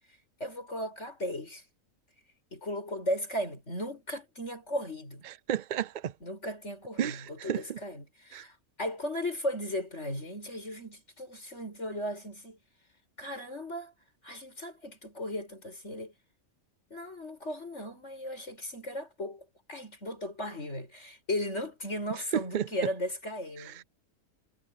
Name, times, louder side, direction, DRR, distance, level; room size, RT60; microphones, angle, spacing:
voice 1, 0.4-1.6 2.5-5.2 6.2-12.6 13.2-13.9 14.2-16.1 16.9-23.9, left 1 dB, 55° left, 8.2 m, -36 dB
voice 2, 5.2-6.1 7.0-7.8 8.3-8.5 22.3-22.7 23.6-23.8, right 10 dB, 60° right, 0.5 m, -32 dB
omnidirectional pair, 1.4 m